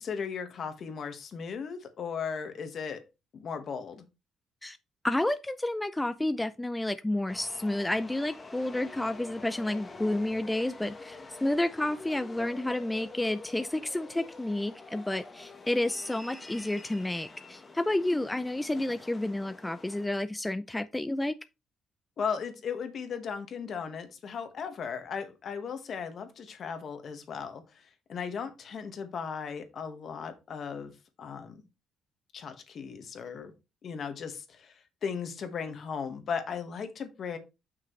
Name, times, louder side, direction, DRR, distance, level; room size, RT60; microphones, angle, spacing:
voice 1, 0.0-3.0 3.3-4.0 22.2-30.9 31.2-31.6 32.3-33.5 33.8-37.4, left 6 dB, 60° left, 1.6 m, -37 dB
voice 2, 5.0-21.4, left 1 dB, 10° left, 0.4 m, -30 dB
sound 1, 7.3-20.1, left 3 dB, 25° left, 1.8 m, -47 dB
7.5 x 5.9 x 3.2 m
cardioid pair, 90°, 0 cm